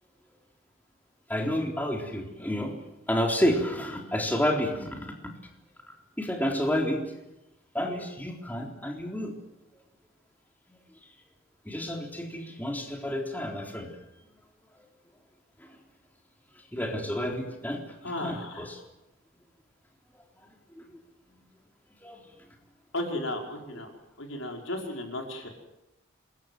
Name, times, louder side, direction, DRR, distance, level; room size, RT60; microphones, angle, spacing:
voice 1, 1.3-2.8 3.1-5.3 6.2-7.0 7.7-9.3 10.7-10.8 11.7-14.0 14.8-14.9 15.6-15.8 16.7-18.8 20.7-21.0 21.3-21.4 22.0-22.3, equal, 10° left, 1 dB, 3.8 m, -30 dB
voice 2, 18.0-18.7 22.9-23.9 24.2-25.5, left 1 dB, 80° left, 2 dB, 5.3 m, -34 dB
27.0 x 22.5 x 7.8 m, 0.95 s
head